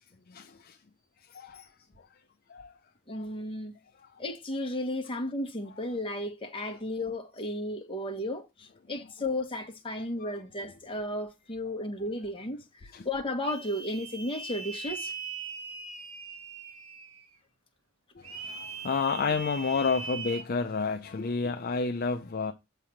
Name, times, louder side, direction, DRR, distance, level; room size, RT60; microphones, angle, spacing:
voice 1, 0.3-0.8 1.3-1.7 2.5-2.7 3.1-3.3 10.0-10.3 12.9-13.1 18.2-22.5, left 4 dB, 45° left, 0.6 m, -30 dB
voice 2, 3.1-3.7 4.2-15.1, left 1 dB, 25° left, 1.3 m, -34 dB
sound 1, 13.4-17.3 18.2-20.4, right 4 dB, 85° right, 1.1 m, -40 dB
7.3 x 3.4 x 5.7 m
head